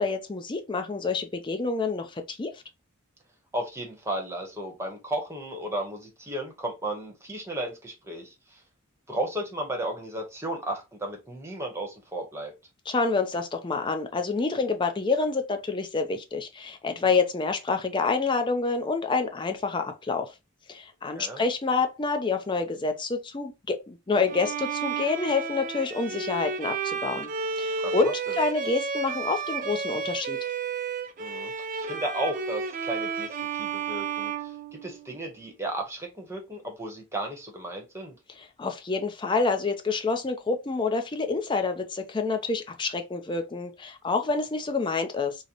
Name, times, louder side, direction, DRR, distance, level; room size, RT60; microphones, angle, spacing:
voice 1, 0.0-2.5 12.9-20.3 20.7-27.3 27.6-30.4 38.6-45.4, left 4 dB, 25° left, 0.4 m, -27 dB
voice 2, 3.5-8.6 9.1-12.5 21.1-21.4 27.8-28.3 31.2-34.5 34.8-38.1, right 1 dB, 15° right, 0.8 m, -34 dB
Bowed string instrument, 24.3-35.3, right 5 dB, 40° right, 0.4 m, -32 dB
3.9 x 2.0 x 2.8 m
head